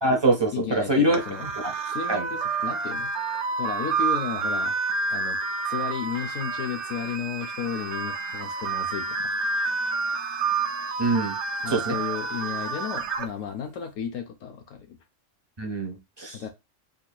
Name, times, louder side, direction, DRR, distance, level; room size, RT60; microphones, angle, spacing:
voice 1, 0.0-1.7 2.1-2.2 11.0-11.4 11.7-12.0 15.6-16.4, right 1 dB, 30° right, 0.5 m, -24 dB
voice 2, 0.5-1.5 1.8-3.1 3.6-4.7 5.1-5.4 5.6-9.2 11.6-15.0 16.3-16.5, left 8 dB, 85° left, 1.1 m, -33 dB
sound 1, 1.1-13.3, right 4 dB, 65° right, 0.9 m, -29 dB
3.9 x 2.7 x 2.2 m
omnidirectional pair, 1.3 m